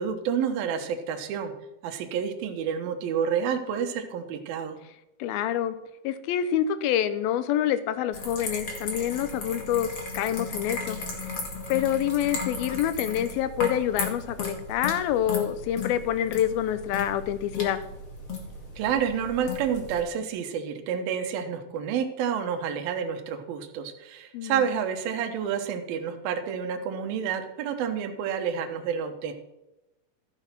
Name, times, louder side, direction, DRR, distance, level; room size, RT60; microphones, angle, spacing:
voice 1, 0.0-1.5 1.8-4.8 18.8-29.3, right 7 dB, 70° right, 5 dB, 2.8 m, -29 dB
voice 2, 5.2-5.8 6.0-11.0 11.7-17.8 24.3-24.6, left 10 dB, 80° left, 12 dB, 2.4 m, -27 dB
sound 1, 8.1-20.0, left 3 dB, 40° left, 2.4 m, -35 dB
14.0 x 6.3 x 5.9 m, 0.94 s
omnidirectional pair, 4.6 m